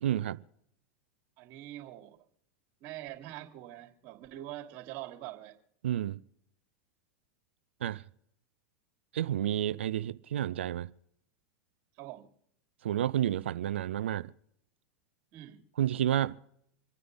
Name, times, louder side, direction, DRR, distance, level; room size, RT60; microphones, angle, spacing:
voice 1, 0.0-0.4 5.8-6.2 7.8-8.0 9.1-10.9 12.8-14.3 15.8-16.4, right 11 dB, 85° right, 0.6 m, -30 dB
voice 2, 1.4-2.2 2.8-5.6 11.9-12.3 15.3-15.7, right 14 dB, 55° right, 3.4 m, -44 dB
27.5 x 9.4 x 4.0 m
hypercardioid pair, 105°, 6 cm